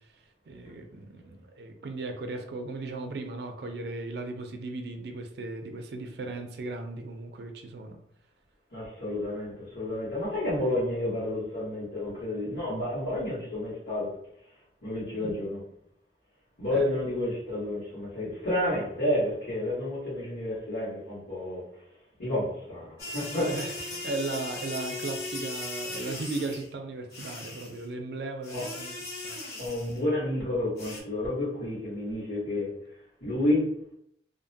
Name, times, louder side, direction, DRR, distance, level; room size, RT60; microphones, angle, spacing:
voice 1, 0.5-8.0 15.2-15.3 16.7-16.9 23.2-23.7 24.0-28.9 29.2-29.5, right 2 dB, 70° right, 0.4 m, -36 dB
voice 2, 8.7-14.1 14.8-15.6 16.6-21.6 22.2-23.6 28.5-28.7 29.6-32.7 33.2-33.7, left 1 dB, 90° left, 1.4 m, -30 dB
sound 1, 23.0-26.7 27.1-27.9 28.4-30.0 30.8-31.0, left 2 dB, 60° left, 0.8 m, -38 dB
2.6 x 2.1 x 2.6 m
head